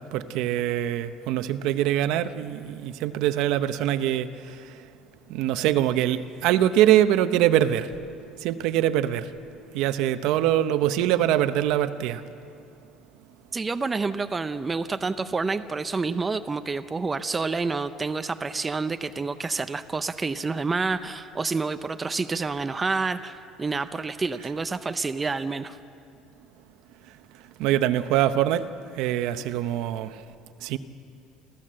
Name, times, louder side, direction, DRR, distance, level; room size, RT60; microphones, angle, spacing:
voice 1, 0.0-4.9 5.3-7.9 8.4-9.3 9.7-12.2 27.3-28.7 28.9-30.2 30.6-30.8, right 12 dB, 65° right, 0.9 m, -24 dB
voice 2, 13.5-25.8, right 4 dB, 15° right, 0.6 m, -28 dB
28.0 x 14.5 x 7.7 m
cardioid pair, 155°, 0 cm